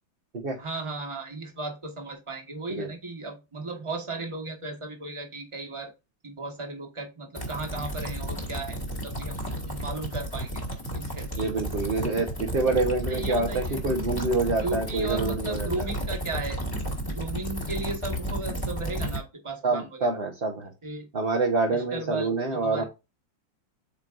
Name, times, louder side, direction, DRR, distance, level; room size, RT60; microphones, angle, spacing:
voice 1, 0.6-5.9 6.2-8.8 9.0-10.6 10.9-11.5 13.1-13.8 14.6-16.6 17.0-20.2 20.8-21.1 21.7-22.8, right 2 dB, 15° right, 2 dB, 1.4 m, -35 dB
sound 1, 7.4-19.2, equal, 10° left, 1.6 m, -32 dB
voice 2, 11.3-15.7 19.6-20.7 21.1-22.8, right 3 dB, 35° right, 1 dB, 1.0 m, -26 dB
8.3 x 4.5 x 2.6 m, 0.26 s
omnidirectional pair, 2.0 m